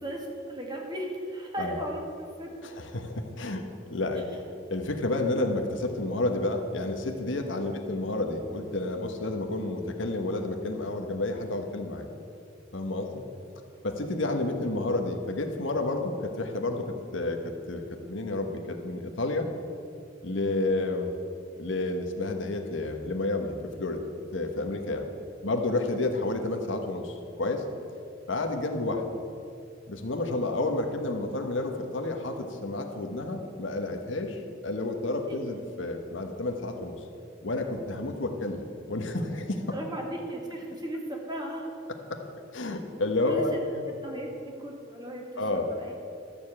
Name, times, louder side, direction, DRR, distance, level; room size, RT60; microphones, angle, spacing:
voice 1, 0.0-2.5 35.3-35.4 39.7-41.7 43.3-43.4 44.0-45.9, right 1 dB, 20° right, 0 dB, 2.0 m, -36 dB
voice 2, 1.6-1.9 2.6-3.6 3.9-4.4 4.7-12.1 12.7-13.2 13.8-17.8 18.1-19.5 20.2-21.1 21.6-24.0 24.3-25.1 25.4-27.7 28.3-29.2 29.9-37.0 37.4-38.6 38.9-39.8 42.1-42.2 42.5-43.8 45.4-45.7, left 2 dB, 70° left, 5 dB, 1.2 m, -30 dB
12.5 x 7.2 x 8.6 m, 2.5 s
head